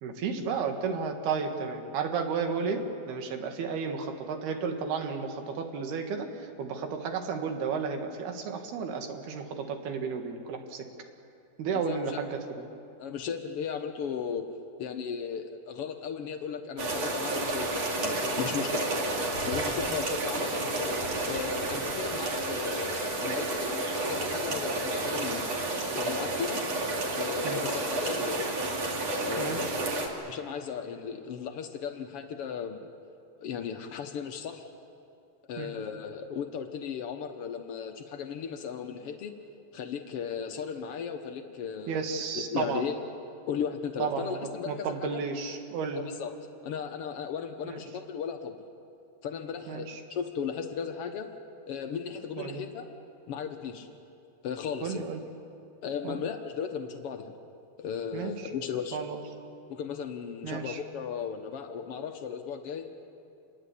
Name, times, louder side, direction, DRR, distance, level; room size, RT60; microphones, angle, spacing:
voice 1, 0.0-6.3 6.6-10.8 11.6-12.4 27.4-27.6 29.4-29.7 35.6-35.7 41.9-42.9 44.0-46.1 47.7-47.8 49.7-50.0 52.4-52.6 54.8-55.2 56.0-56.2 58.1-58.5 58.9-59.2 60.4-60.8, right 5 dB, 85° right, 4 dB, 3.9 m, -33 dB
voice 2, 11.7-12.2 13.0-14.5 14.8-18.9 19.5-20.9 21.3-25.5 25.9-26.6 27.1-28.4 29.2-29.8 30.2-32.8 33.4-34.6 35.5-39.3 39.7-42.0 42.3-43.0 43.5-45.2 45.9-46.4 46.6-48.5 49.2-51.3 51.7-52.9 53.3-53.9 54.4-55.1 55.8-57.3 57.8-59.0 59.7-63.0, left 7 dB, 80° left, 6 dB, 1.3 m, -36 dB
sound 1, 16.8-30.1, right 2 dB, 45° right, 3.9 m, -31 dB
28.0 x 22.0 x 8.5 m, 2.5 s
omnidirectional pair, 4.4 m